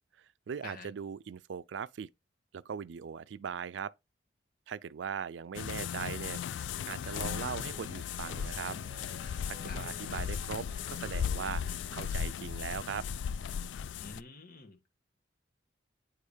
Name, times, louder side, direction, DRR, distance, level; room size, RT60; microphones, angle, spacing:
voice 1, 0.5-2.1 2.5-3.9 4.7-8.8 9.4-11.6 11.9-13.1, right 7 dB, 75° right, 0.4 m, -40 dB
sound 1, 5.5-14.2, left 8 dB, 80° left, 0.3 m, -36 dB
sound 2, 6.7-12.1, right 3 dB, 45° right, 0.8 m, -54 dB
voice 2, 14.0-14.9, left 3 dB, 55° left, 1.5 m, -48 dB
9.1 x 5.0 x 2.7 m
head